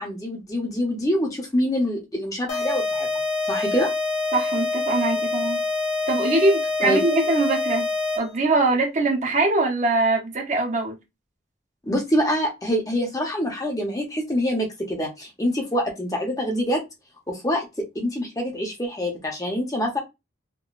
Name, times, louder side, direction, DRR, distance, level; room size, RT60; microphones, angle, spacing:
voice 1, 0.0-3.1 3.4-3.9 6.8-7.0 11.8-16.9 17.3-20.0, equal, 20° left, 0.7 m, -25 dB
sound 1, 2.5-8.4, left 3 dB, 75° left, 1.1 m, -26 dB
voice 2, 4.3-5.6 6.1-7.9 8.2-11.0, right 2 dB, 35° right, 0.7 m, -22 dB
3.6 x 2.1 x 2.4 m
head